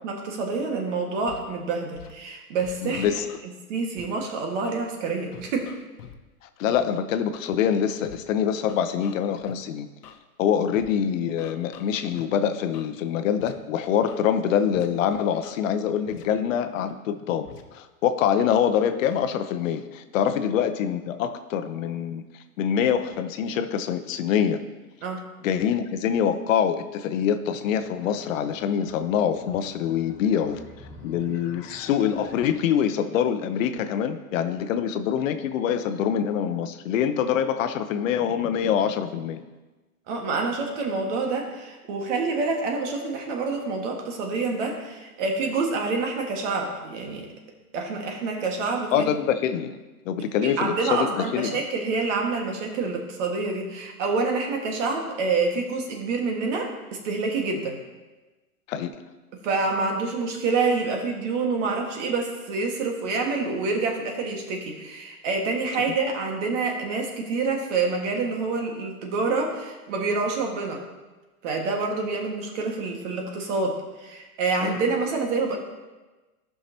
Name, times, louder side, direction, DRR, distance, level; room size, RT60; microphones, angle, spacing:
voice 1, 0.0-3.1 3.7-5.7 25.0-25.3 40.1-47.3 47.7-49.1 50.4-57.8 59.3-70.8 71.4-75.6, right 4 dB, 50° right, 1 dB, 1.8 m, -27 dB
Scratching (performance technique), 1.3-1.4 1.9-2.1 2.6-3.4 4.0-4.1 4.6-4.8 5.3-6.2 6.7-6.8 7.3-7.6 8.0-8.2 8.7-9.5 10.0-10.2 10.7-10.9 11.4-12.2 12.7-12.9 13.4-13.5 13.8-14.2 14.7-14.9 15.3-15.5 16.1-16.2 16.8-16.9 17.4-17.6, left 8 dB, 85° left, 1.0 m, -45 dB
voice 2, 2.8-3.3 6.6-9.9 10.4-22.2 22.6-24.6 25.4-30.6 31.0-39.4 48.9-49.8 50.1-51.6 58.7-58.9 74.6-74.8, left 8 dB, 60° left, 9 dB, 0.7 m, -25 dB
sound 1, 27.5-32.5, left 2 dB, 15° left, 1.3 m, -48 dB
14.0 x 5.8 x 2.8 m, 1.2 s
hypercardioid pair, 130°, 45 cm